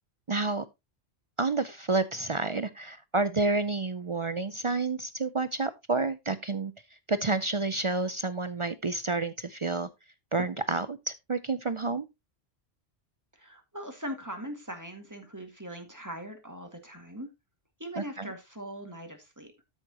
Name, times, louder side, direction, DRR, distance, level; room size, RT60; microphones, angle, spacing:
voice 1, 0.3-0.7 1.4-6.7 7.1-9.9 10.3-12.1 18.0-18.3, right 3 dB, 45° right, 0.4 m, -29 dB
voice 2, 13.3-17.3 17.8-19.5, equal, 15° right, 1.9 m, -41 dB
12.5 x 6.5 x 2.9 m
omnidirectional pair, 1.2 m